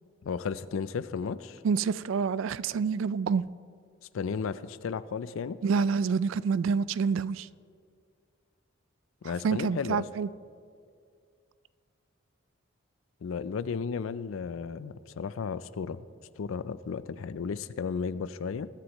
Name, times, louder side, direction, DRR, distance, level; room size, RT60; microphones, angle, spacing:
voice 1, 0.2-1.6 4.1-5.6 9.2-10.0 13.2-16.0 16.4-18.7, left 5 dB, 80° left, 0.4 m, -34 dB
voice 2, 1.6-3.4 5.6-7.5 9.2-10.3, right 5 dB, 70° right, 0.3 m, -27 dB
21.5 x 9.7 x 3.0 m
head